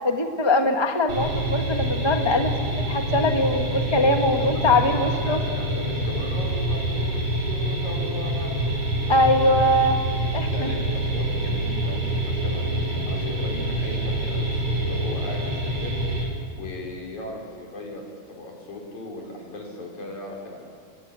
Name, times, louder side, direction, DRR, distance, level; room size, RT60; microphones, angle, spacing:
voice 1, 0.0-5.4 9.1-10.0 10.3-10.7, left 1 dB, 15° left, 4 dB, 0.9 m, -22 dB
sound 1, 1.1-16.2, right 1 dB, 60° right, 6.1 m, -26 dB
voice 2, 4.0-9.9 10.5-15.9 16.5-20.6, left 1 dB, 80° left, -1 dB, 6.5 m, -38 dB
30.0 x 19.0 x 9.0 m, 2.2 s
omnidirectional pair, 3.3 m